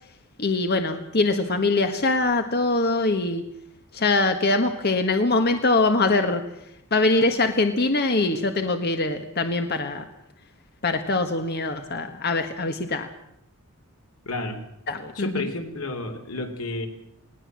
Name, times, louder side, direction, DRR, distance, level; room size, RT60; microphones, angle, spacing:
voice 1, 0.4-3.4 3.9-6.4 6.9-10.0 10.8-13.1 14.9-15.5, left 2 dB, 50° left, 7 dB, 1.5 m, -23 dB
voice 2, 14.2-14.6 15.1-16.9, left 2 dB, 90° left, 7 dB, 3.0 m, -31 dB
20.0 x 18.5 x 7.6 m, 0.77 s
head